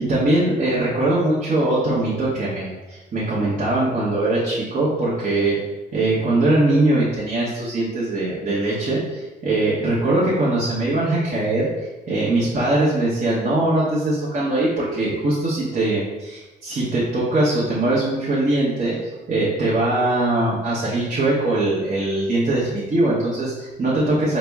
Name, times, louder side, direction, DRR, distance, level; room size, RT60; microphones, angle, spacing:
voice 1, 0.0-5.6 5.9-24.4, right 2 dB, 40° right, -9 dB, 1.0 m, -21 dB
4.1 x 2.1 x 3.4 m, 1.1 s
cardioid pair, 90°, 20 cm